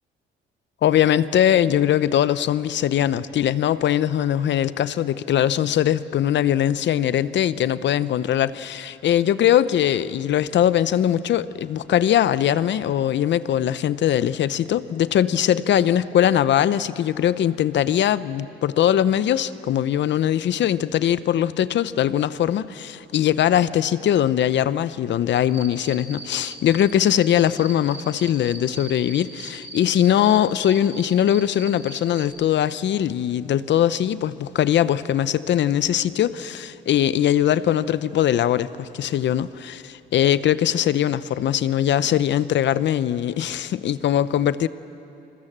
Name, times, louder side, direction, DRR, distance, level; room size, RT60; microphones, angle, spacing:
voice 1, 0.8-44.7, left 10 dB, 65° left, 0.8 m, -21 dB
sound 1, 25.3-30.4 30.6-32.2, right 2 dB, 30° right, 4.5 m, -38 dB
29.0 x 21.5 x 7.4 m
cardioid pair, 90°, 20 cm